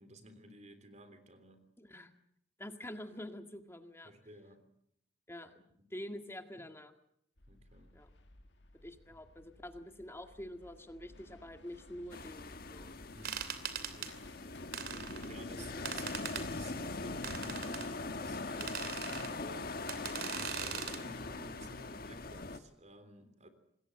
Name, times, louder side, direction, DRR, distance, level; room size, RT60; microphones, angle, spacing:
voice 1, 0.0-1.6 4.0-4.6 5.8-5.9 7.5-7.9 9.1-9.5 13.1-13.4 13.9-14.2 15.3-23.5, right 1 dB, 40° right, 10 dB, 3.5 m, -54 dB
voice 2, 1.8-2.1 2.6-4.1 5.3-5.6 5.9-6.9 7.9-8.1 8.8-12.9 15.5-15.8, left 1 dB, 15° left, 7 dB, 1.9 m, -47 dB
sound 1, 7.4-19.3, left 2 dB, 80° left, 2.0 m, -55 dB
sound 2, 12.1-22.6, left 3 dB, 55° left, 1.5 m, -42 dB
sound 3, 13.2-14.1 14.7-15.3 15.9-16.5 17.2-17.9 18.6-19.3 19.9-21.0, right 7 dB, 60° right, 2.9 m, -40 dB
26.5 x 20.5 x 7.8 m, 0.73 s
head